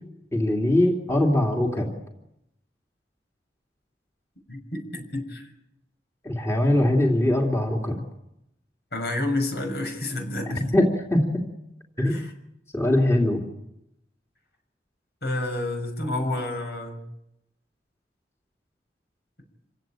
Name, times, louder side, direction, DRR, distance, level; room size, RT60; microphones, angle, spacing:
voice 1, 0.3-1.9 6.2-8.0 10.7-11.5 12.0-12.2 12.7-13.4, left 1 dB, 15° left, -1 dB, 2.9 m, -22 dB
voice 2, 4.5-5.5 8.9-10.6 12.1-12.3 15.2-17.0, left 2 dB, 65° left, 4 dB, 6.7 m, -29 dB
27.5 x 17.0 x 9.1 m, 0.84 s
head